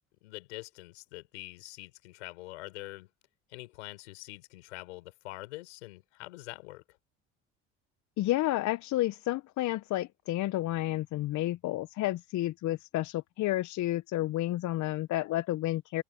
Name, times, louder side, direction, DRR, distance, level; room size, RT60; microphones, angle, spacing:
voice 1, 0.2-3.1 3.5-7.0, left 20 dB, 90° left, 5.5 m, -45 dB
voice 2, 8.2-16.0, left 16 dB, 60° left, 0.7 m, -31 dB
open air
hypercardioid pair, 70°, 33 cm